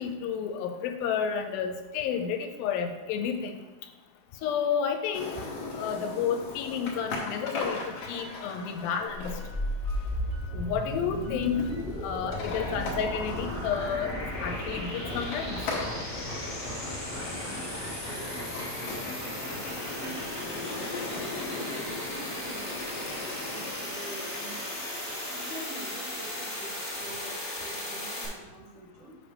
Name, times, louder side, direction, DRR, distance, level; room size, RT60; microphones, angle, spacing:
voice 1, 0.0-3.6 4.4-5.4 5.7-7.8 8.1-9.3 10.5-11.7 12.0-15.6, left 7 dB, 85° left, 6 dB, 2.4 m, -31 dB
sound 1, 5.1-23.7, left 3 dB, 70° left, 1.5 m, -40 dB
sound 2, 7.5-22.0, left 1 dB, 45° right, 1.2 m, -55 dB
sound 3, 9.1-28.3, left 1 dB, 45° left, 0.7 m, -35 dB
voice 2, 17.5-18.4 18.9-20.9 21.5-24.8 25.3-29.2, right 2 dB, 80° right, -4 dB, 3.8 m, -46 dB
7.4 x 5.3 x 3.4 m, 1.1 s
omnidirectional pair, 4.2 m